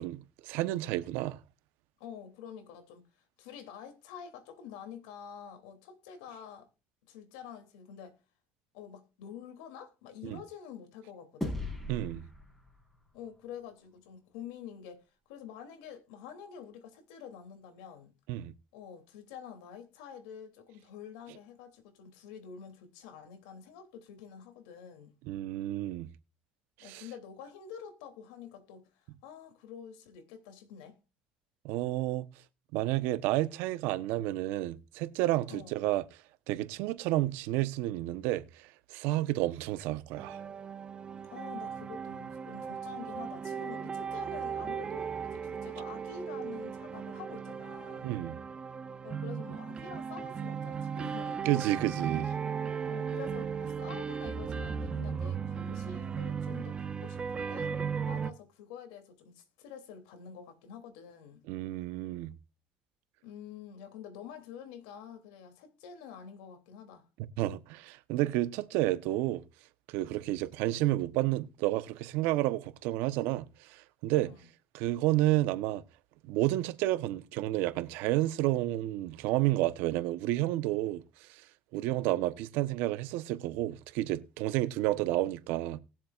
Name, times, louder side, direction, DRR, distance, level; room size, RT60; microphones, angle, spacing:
voice 1, 0.0-1.4 10.2-10.4 11.9-12.2 18.3-18.5 25.3-26.1 26.9-27.0 31.6-32.3 32.7-36.0 36.5-40.4 48.0-48.4 51.4-52.3 61.5-62.3 67.4-69.4 69.9-74.3 74.7-75.8 76.3-81.0 81.3-81.4 81.7-85.8, right 16 dB, 80° right, 0.9 m, -30 dB
voice 2, 2.0-3.0 3.4-6.7 7.1-8.1 8.7-11.6 13.1-18.1 18.7-25.1 26.8-31.0 35.5-35.7 41.2-48.1 49.0-51.5 52.9-61.4 63.2-67.1 74.1-74.5, left 8 dB, 85° left, 2.9 m, -47 dB
sound 1, 11.4-14.0, left 1 dB, 10° left, 4.4 m, -40 dB
sound 2, 40.2-58.3, right 6 dB, 30° right, 1.1 m, -36 dB
19.5 x 7.4 x 2.5 m
supercardioid pair, 100°, 3 cm